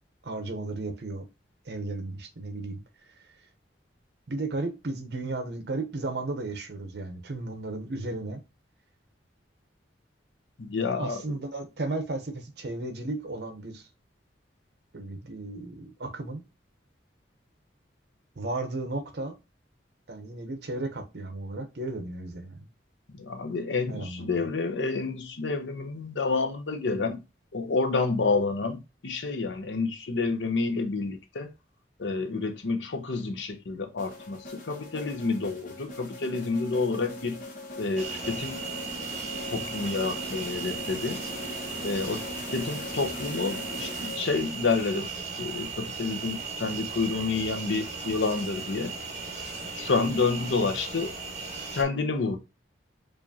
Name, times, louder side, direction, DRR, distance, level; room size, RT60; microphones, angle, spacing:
voice 1, 0.2-1.3 1.6-2.8 4.3-8.4 10.8-13.9 14.9-16.4 18.4-19.4 20.1-22.7 23.9-24.4, right 2 dB, 60° right, 0.8 m, -34 dB
voice 2, 10.6-11.2 23.1-27.2 27.5-31.5 32.0-37.4 37.8-38.7 39.5-41.2 41.8-45.1 45.4-48.9 49.7-51.1 51.7-52.4, left 4 dB, 90° left, 0.7 m, -29 dB
sound 1, 34.0-44.6, left 1 dB, 45° left, 1.0 m, -40 dB
sound 2, 38.0-51.8, right 5 dB, 40° right, 1.2 m, -37 dB
4.8 x 2.5 x 2.7 m
head